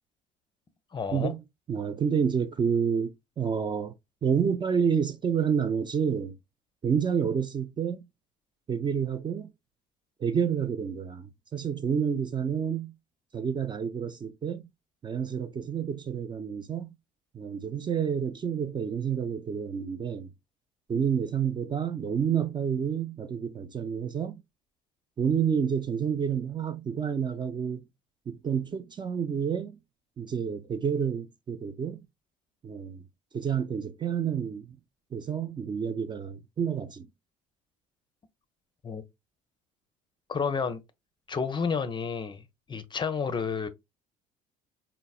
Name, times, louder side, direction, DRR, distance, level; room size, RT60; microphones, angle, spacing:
voice 1, 0.9-1.3 38.8-39.0 40.3-40.8 41.3-43.7, left 5 dB, 25° left, 0.5 m, -30 dB
voice 2, 1.7-3.1 3.4-3.9 4.2-6.3 6.8-8.1 8.7-9.5 10.2-12.9 13.3-14.6 15.0-16.9 17.3-20.3 20.9-24.4 25.2-27.8 28.3-29.7 30.2-32.0 32.6-33.0 33.3-34.8 35.1-37.1, right 7 dB, 25° right, 0.4 m, -29 dB
4.0 x 2.0 x 2.3 m
hypercardioid pair, 60°, 17 cm